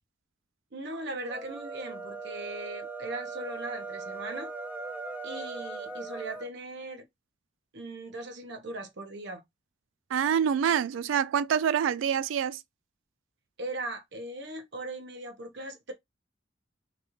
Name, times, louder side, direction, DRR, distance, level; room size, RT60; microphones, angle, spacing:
voice 1, 0.7-4.5 5.2-7.1 7.7-9.4 13.6-15.9, right 2 dB, 65° right, 0.8 m, -39 dB
sound 1, 1.2-6.5, right 3 dB, 10° right, 0.4 m, -39 dB
voice 2, 10.1-12.6, right 8 dB, 80° right, 0.3 m, -26 dB
3.0 x 2.4 x 3.0 m
head